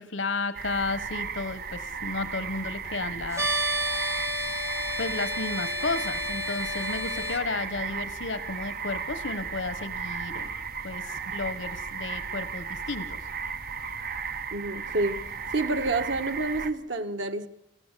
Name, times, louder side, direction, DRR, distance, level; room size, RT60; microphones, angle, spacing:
voice 1, 0.0-3.6 5.0-10.5 10.8-13.2, left 3 dB, 85° left, 1.2 m, -33 dB
sound 1, 0.5-16.7, right 6 dB, 50° right, 1.4 m, -35 dB
sound 2, 3.3-7.4, equal, 15° right, 1.8 m, -31 dB
voice 2, 14.5-15.2 15.5-17.5, right 2 dB, 85° right, 1.7 m, -28 dB
29.5 x 13.5 x 8.4 m
head